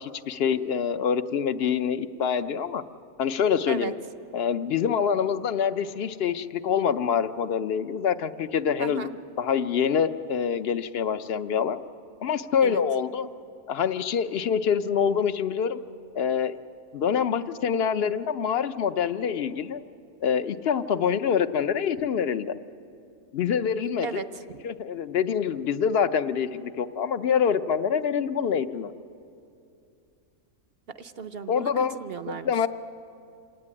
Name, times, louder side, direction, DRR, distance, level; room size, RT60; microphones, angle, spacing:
voice 1, 0.0-2.8 3.2-3.9 4.3-11.8 12.2-13.3 13.7-15.8 16.1-16.6 16.9-19.8 20.2-22.5 23.3-24.2 24.6-28.9 31.5-31.9 32.3-32.7, left 7 dB, 55° left, 12 dB, 0.9 m, -26 dB
voice 2, 24.0-24.6 30.9-32.5, right 5 dB, 55° right, 11 dB, 0.8 m, -36 dB
27.0 x 17.5 x 9.8 m, 2.6 s
omnidirectional pair, 1.4 m